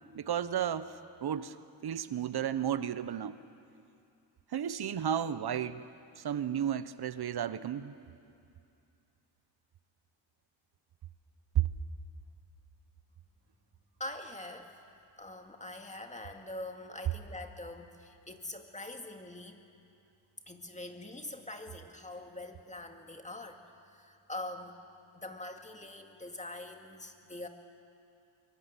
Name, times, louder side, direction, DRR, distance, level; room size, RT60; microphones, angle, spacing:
voice 1, 0.1-1.6 1.8-3.4 4.5-5.8 6.2-7.9 11.5-11.7, right 9 dB, 50° right, 13 dB, 1.0 m, -33 dB
voice 2, 14.0-14.7 15.2-19.6 20.5-24.8 25.1-27.5, left 1 dB, 15° left, 4 dB, 2.1 m, -44 dB
24.0 x 23.5 x 8.3 m, 2.5 s
cardioid pair, 100°, 49 cm